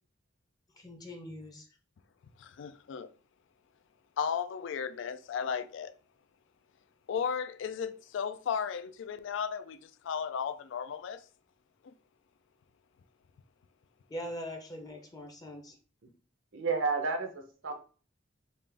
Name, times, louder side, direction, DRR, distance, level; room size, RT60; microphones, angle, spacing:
voice 1, 0.7-1.7 14.1-15.8, equal, 20° left, 0.6 m, -42 dB
voice 2, 2.4-3.1 4.2-5.9 7.1-11.2 11.8-11.9, left 7 dB, 65° left, 0.3 m, -35 dB
voice 3, 16.5-17.7, right 4 dB, 75° right, 0.8 m, -31 dB
3.6 x 2.5 x 3.4 m
head